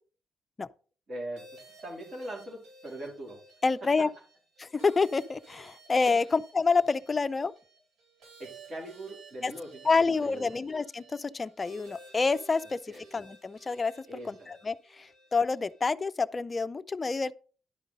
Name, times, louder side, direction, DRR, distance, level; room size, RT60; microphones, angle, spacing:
voice 1, 1.1-1.4 1.8-3.4 6.1-6.3 8.4-10.6 12.9-13.0 14.1-14.5, right 1 dB, 45° right, 3.6 m, -41 dB
sound 1, 1.4-15.8, right 3 dB, 85° right, 4.3 m, -55 dB
voice 2, 3.6-4.1 4.6-7.5 9.4-9.5 9.8-13.9 14.3-17.3, left 4 dB, 30° left, 0.4 m, -28 dB
11.0 x 5.1 x 4.0 m
cardioid pair, 90°, 0 cm